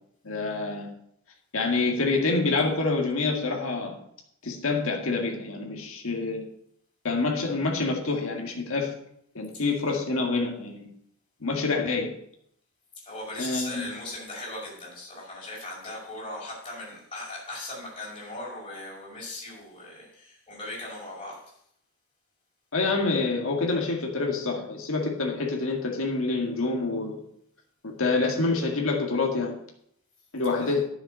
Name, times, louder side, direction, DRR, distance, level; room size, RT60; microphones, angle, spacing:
voice 1, 0.2-0.9 1.5-4.0 4.4-6.4 7.0-8.9 9.3-10.9 11.4-12.1 13.4-13.9 22.7-27.2 27.8-29.5 30.3-30.8, left 3 dB, 65° left, 0 dB, 2.0 m, -27 dB
voice 2, 13.0-21.5 30.6-30.7, left 2 dB, 25° left, -6 dB, 5.4 m, -38 dB
10.0 x 7.3 x 6.4 m, 0.71 s
head